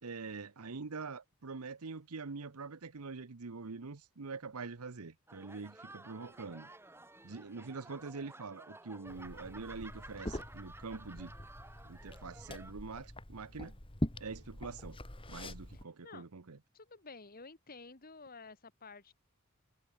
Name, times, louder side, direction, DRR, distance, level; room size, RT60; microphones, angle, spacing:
voice 1, 0.0-6.7 7.2-11.3 11.8-13.8 14.2-15.0 15.3-16.6, right 4 dB, 85° right, 0.9 m, -44 dB
sound 1, 5.3-12.7, right 2 dB, 10° right, 2.5 m, -54 dB
Liquid, 9.1-15.8, left 1 dB, 25° left, 2.2 m, -43 dB
voice 2, 16.7-19.1, left 4 dB, 40° left, 1.8 m, -51 dB
head